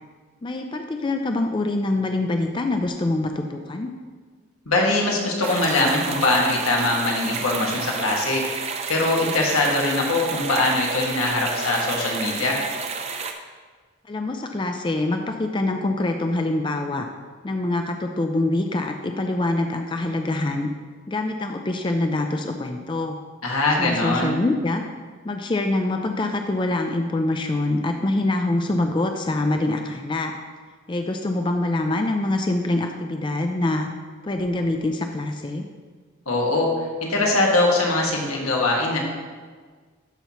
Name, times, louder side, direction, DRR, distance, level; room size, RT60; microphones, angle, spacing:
voice 1, 0.4-3.9 14.1-17.1 17.4-20.7 21.1-23.2 23.8-24.8 25.2-30.3 30.9-33.9 34.2-35.7, left 2 dB, 20° left, 5 dB, 0.4 m, -25 dB
voice 2, 4.6-8.4 8.9-12.6 23.4-24.4 36.3-36.7 37.0-39.0, left 2 dB, 90° left, -1 dB, 1.7 m, -22 dB
sound 1, 5.4-13.3, right 5 dB, 30° right, 0.5 m, -31 dB
12.5 x 5.6 x 3.0 m, 1.5 s
head